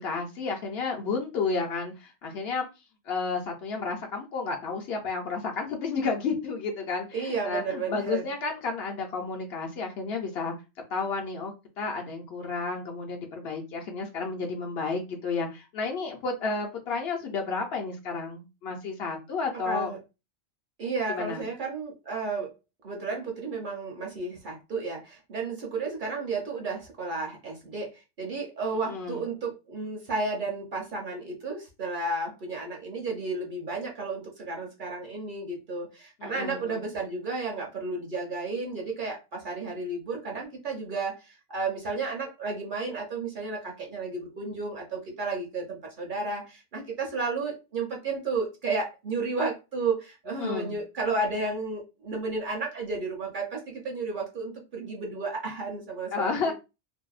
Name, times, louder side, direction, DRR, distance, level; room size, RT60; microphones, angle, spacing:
voice 1, 0.0-2.7 3.1-10.5 10.9-19.9 21.1-21.4 28.9-29.2 36.2-36.8 50.4-50.8 56.1-56.5, left 4 dB, 65° left, 0.7 m, -31 dB
voice 2, 7.1-8.3 19.6-20.0 20.8-22.5 22.8-56.5, right 3 dB, 50° right, 0.7 m, -32 dB
2.6 x 2.1 x 2.3 m
omnidirectional pair, 1.2 m